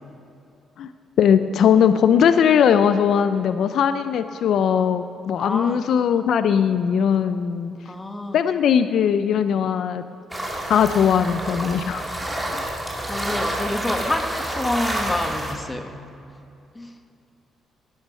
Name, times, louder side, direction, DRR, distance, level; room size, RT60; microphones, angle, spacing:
voice 1, 1.2-7.7 8.3-10.0 10.7-12.0 12.5-12.6, left 8 dB, 70° left, 11 dB, 0.5 m, -19 dB
voice 2, 5.4-5.8 7.8-8.4 12.4-12.7 13.1-15.9 16.7-17.0, left 2 dB, 20° left, 6 dB, 1.3 m, -28 dB
sound 1, 10.3-15.5, right 1 dB, 5° right, 2.6 m, -28 dB
17.0 x 9.3 x 5.5 m, 2.7 s
cardioid pair, 90°, 0 cm